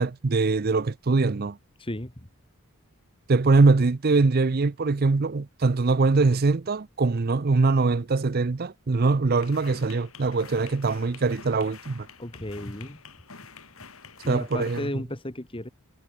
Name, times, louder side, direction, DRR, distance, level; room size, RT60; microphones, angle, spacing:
voice 1, 0.0-1.6 3.3-12.1 14.3-14.9, right 3 dB, 45° right, 0.6 m, -22 dB
voice 2, 1.8-2.1 12.2-13.0 14.2-15.7, left 1 dB, 25° left, 1.7 m, -34 dB
sound 1, 9.4-14.9, left 5 dB, 75° left, 7.2 m, -47 dB
head